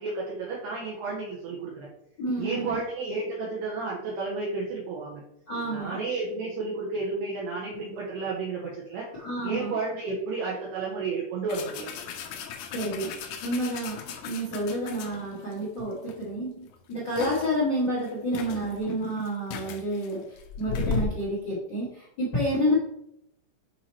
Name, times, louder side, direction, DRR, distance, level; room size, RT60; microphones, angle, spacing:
voice 1, 0.0-1.7 2.4-5.2 5.6-9.0 9.4-11.9, right 3 dB, 75° right, -4 dB, 2.5 m, -32 dB
voice 2, 2.2-2.8 5.5-6.0 7.7-7.8 9.1-9.7 12.7-22.7, equal, 55° left, -8 dB, 1.2 m, -29 dB
sound 1, 11.5-15.5 16.1-16.2 16.6-17.6 18.1-18.2 18.3-21.2, left 5 dB, 90° left, 1.7 m, -35 dB
7.9 x 2.9 x 4.2 m, 0.80 s
omnidirectional pair, 4.3 m